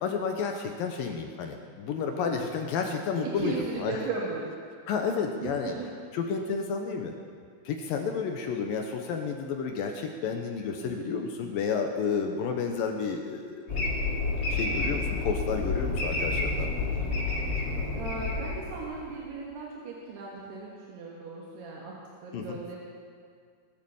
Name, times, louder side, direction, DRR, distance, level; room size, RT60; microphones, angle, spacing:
voice 1, 0.0-4.0 4.9-5.7 6.1-7.2 7.7-13.8 14.5-16.7 22.3-22.6, left 5 dB, 75° left, 4 dB, 2.4 m, -31 dB
voice 2, 3.4-4.5 5.4-5.9 10.8-11.3 14.5-14.8 17.9-22.0 22.2-22.8, right 4 dB, 80° right, -4 dB, 3.7 m, -37 dB
sound 1, 13.7-19.1, left 3 dB, 30° left, 2.8 m, -29 dB
22.5 x 8.1 x 7.1 m, 2.1 s
omnidirectional pair, 4.6 m